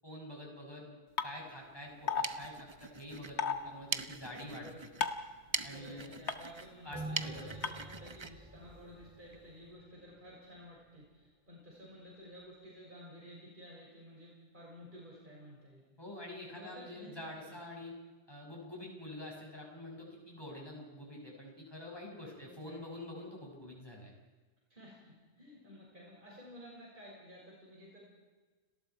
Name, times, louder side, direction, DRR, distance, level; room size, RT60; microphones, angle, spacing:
voice 1, 0.0-4.9 5.6-6.2 6.8-7.5 16.0-17.9 18.3-24.1, left 1 dB, 20° left, -2 dB, 6.7 m, -47 dB
sound 1, 1.2-1.3 2.1-2.2 3.4-3.5 5.0-5.3 6.3-6.4 7.6-7.7, left 6 dB, 75° left, 1.5 m, -31 dB
sound 2, 1.9-9.4, right 4 dB, 30° right, 0.8 m, -43 dB
voice 2, 4.4-4.8 5.6-15.8 16.5-17.1 17.5-17.6 22.2-22.8 24.7-28.0, equal, 45° right, -4 dB, 6.3 m, -53 dB
sound 3, 6.9-9.8 10.2-10.3, right 1 dB, 5° right, 3.1 m, -46 dB
30.0 x 19.5 x 4.7 m, 1.3 s
omnidirectional pair, 1.2 m